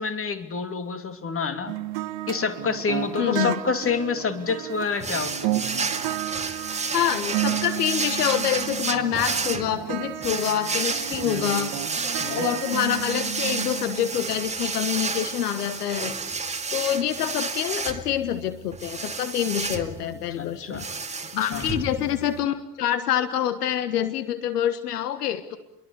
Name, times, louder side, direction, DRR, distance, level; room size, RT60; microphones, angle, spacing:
voice 1, 0.0-1.7 2.3-5.9 11.2-11.7 12.2-12.5 20.4-20.9 21.4-21.6, left 5 dB, 30° left, 10 dB, 3.0 m, -28 dB
sound 1, 1.7-14.7, right 15 dB, 60° right, 1.4 m, -33 dB
voice 2, 3.2-3.6 6.9-11.7 12.3-16.1 16.7-20.9 21.3-25.6, left 10 dB, 75° left, 12 dB, 1.5 m, -26 dB
sound 2, 5.0-22.4, right 4 dB, 15° right, 2.5 m, -31 dB
29.5 x 22.5 x 8.3 m, 0.80 s
figure-of-eight pair, 70°, 46 cm